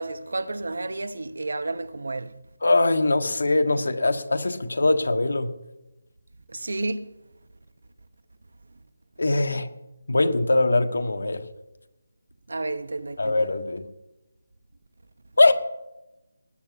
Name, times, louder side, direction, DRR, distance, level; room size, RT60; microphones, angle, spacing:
voice 1, 0.0-2.3 6.5-7.1 12.5-13.4, right 2 dB, 85° right, 1.0 m, -31 dB
voice 2, 2.6-5.5 9.2-9.7 10.1-11.4 13.2-13.8 15.4-15.5, left 2 dB, 80° left, 1.5 m, -22 dB
19.0 x 9.5 x 4.2 m
figure-of-eight pair, 180°, 0 cm